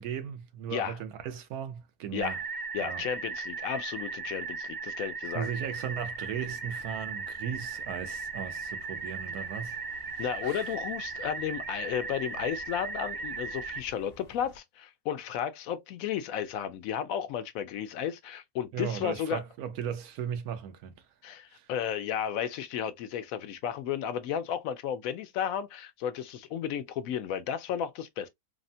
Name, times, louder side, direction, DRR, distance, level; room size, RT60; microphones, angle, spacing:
voice 1, 0.0-2.4 2.8-3.0 5.3-10.6 18.7-21.1 21.5-21.7, right 8 dB, 90° right, 1.2 m, -37 dB
sound 1, 2.2-13.8, right 4 dB, 35° right, 0.3 m, -37 dB
voice 2, 2.7-5.5 10.2-19.4 21.2-28.3, left 9 dB, 75° left, 1.0 m, -33 dB
sound 2, 5.4-14.6, left 1 dB, 50° left, 0.9 m, -55 dB
3.5 x 2.1 x 2.6 m
omnidirectional pair, 1.5 m